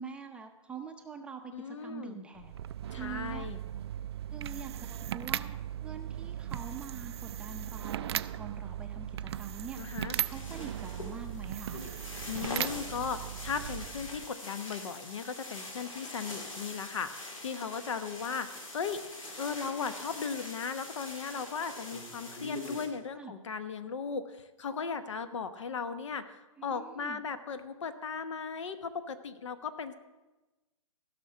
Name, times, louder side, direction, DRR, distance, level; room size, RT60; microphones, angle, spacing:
voice 1, 0.0-2.6 2.9-3.5 4.3-5.6 5.8-11.8 23.2-23.3 26.6-27.2, right 6 dB, 5° right, 3 dB, 0.6 m, -44 dB
voice 2, 1.5-2.2 2.9-3.6 9.8-10.2 12.3-19.0 19.4-29.9, left 6 dB, 60° left, 11 dB, 1.0 m, -37 dB
sound 1, 2.3-14.3, right 11 dB, 50° right, 0.4 m, -38 dB
sound 2, 10.1-22.9, left 2 dB, 75° left, 3.0 m, -43 dB
15.5 x 6.0 x 6.6 m, 1.1 s
hypercardioid pair, 135°, 17 cm